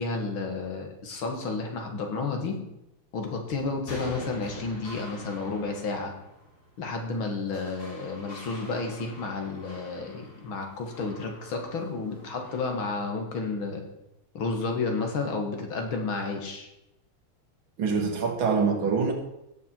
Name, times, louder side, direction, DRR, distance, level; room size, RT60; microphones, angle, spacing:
voice 1, 0.0-2.6 3.1-6.1 6.8-13.8 14.3-16.7, left 3 dB, 75° left, 3 dB, 2.5 m, -31 dB
sound 1, 3.5-12.8, equal, 50° left, 3.8 m, -45 dB
voice 2, 17.8-19.1, right 5 dB, 75° right, 3 dB, 2.5 m, -25 dB
17.0 x 7.1 x 4.5 m, 0.87 s
omnidirectional pair, 2.3 m